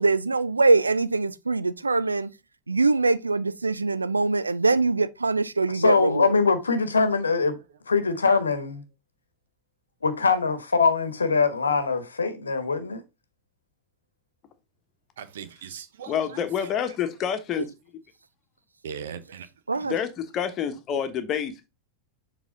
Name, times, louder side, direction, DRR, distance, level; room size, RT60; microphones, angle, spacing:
voice 1, 0.0-2.3 2.7-6.3 19.7-19.9, right 3 dB, 80° right, 0.4 m, -23 dB
voice 2, 5.7-7.5 7.9-8.8 10.0-13.0, left 4 dB, 75° left, 1.0 m, -23 dB
voice 3, 15.2-16.7 18.8-19.5 19.7-19.9, right 7 dB, 60° right, 0.8 m, -40 dB
voice 4, 16.1-17.7 19.8-21.7, left 8 dB, 30° left, 1.2 m, -28 dB
7.1 x 3.9 x 3.9 m
figure-of-eight pair, 90°, 0 cm